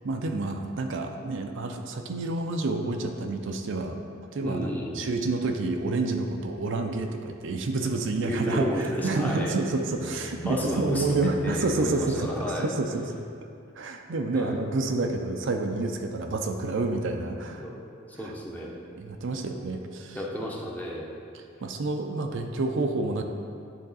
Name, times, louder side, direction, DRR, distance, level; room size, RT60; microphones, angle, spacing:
voice 1, 0.0-4.0 4.3-13.2 13.8-17.7 18.2-18.3 19.0-20.2 21.3-23.2, right 3 dB, 60° right, 4 dB, 0.5 m, -29 dB
voice 2, 4.4-5.0 8.1-9.5 10.4-11.0 11.4-12.7 14.3-14.6 17.5-17.7 18.1-18.8 20.1-21.1, equal, 10° left, -3 dB, 0.7 m, -32 dB
sound 1, 9.3-13.3, equal, 25° left, 0.4 m, -40 dB
10.0 x 3.7 x 4.0 m, 2.4 s
head